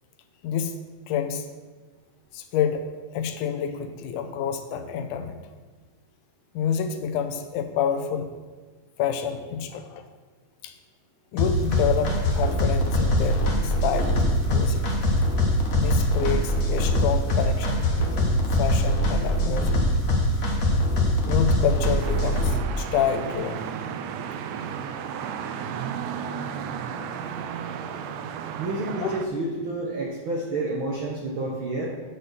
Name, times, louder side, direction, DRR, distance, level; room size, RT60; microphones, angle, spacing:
voice 1, 0.4-0.8 1.1-1.5 2.3-2.9 3.1-5.4 6.5-8.3 9.0-10.1 10.6-10.7 11.3-14.9 15.8-19.8 21.2-23.6 29.0-29.1, left 7 dB, 90° left, 7 dB, 2.2 m, -28 dB
sound 1, 11.4-22.5, equal, 70° left, 0.8 m, -23 dB
sound 2, 22.0-29.3, right 7 dB, 80° right, 1.5 m, -33 dB
voice 2, 28.6-31.9, right 2 dB, 65° right, -3 dB, 1.2 m, -29 dB
9.1 x 4.2 x 6.5 m, 1.4 s
omnidirectional pair, 3.5 m